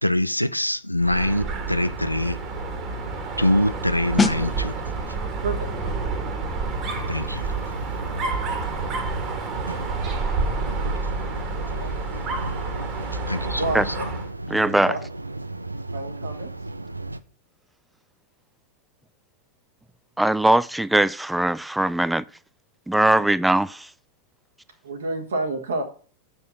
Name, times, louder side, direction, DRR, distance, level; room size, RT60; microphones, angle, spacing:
voice 1, 0.0-2.4 3.4-4.8 7.1-7.5 13.3-14.1, left 1 dB, 90° left, 0.5 m, -24 dB
Dog, 1.0-14.3, right 3 dB, 35° right, 1.8 m, -29 dB
sound 1, 4.2-14.7 15.0-15.2, left 3 dB, 10° left, 0.8 m, -34 dB
sound 2, 6.8-17.2, right 2 dB, 85° right, 0.5 m, -35 dB
voice 2, 13.4-14.0 14.7-15.0 15.9-16.5 23.1-23.3 24.8-25.8, right 2 dB, 65° right, 1.8 m, -29 dB
voice 3, 14.5-14.9 20.2-22.2 22.9-23.9, right 1 dB, 5° right, 0.4 m, -20 dB
6.8 x 5.5 x 7.1 m
figure-of-eight pair, 90°, 0 cm